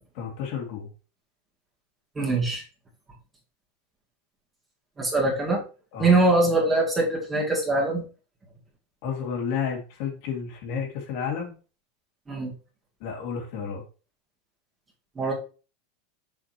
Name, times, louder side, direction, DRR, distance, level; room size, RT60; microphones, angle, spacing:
voice 1, 0.2-0.9 5.9-6.2 9.0-11.5 13.0-13.8, left 7 dB, 60° left, 0 dB, 2.2 m, -31 dB
voice 2, 2.2-2.6 5.0-5.6 6.0-8.0 12.3-12.5 15.2-15.3, right 2 dB, 15° right, -2 dB, 2.3 m, -22 dB
6.3 x 5.7 x 2.9 m, 0.35 s
supercardioid pair, 135°, 0 cm